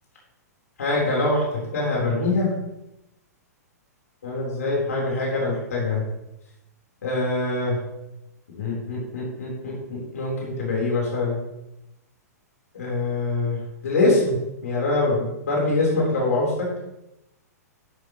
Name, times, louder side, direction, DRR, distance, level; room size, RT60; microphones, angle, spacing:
voice 1, 0.8-2.5 4.2-6.0 7.0-7.8 8.5-11.4 12.7-14.4 14.6-16.7, left 2 dB, 65° left, -3 dB, 4.0 m, -24 dB
11.5 x 11.5 x 3.1 m, 0.90 s
figure-of-eight pair, 105°, 9 cm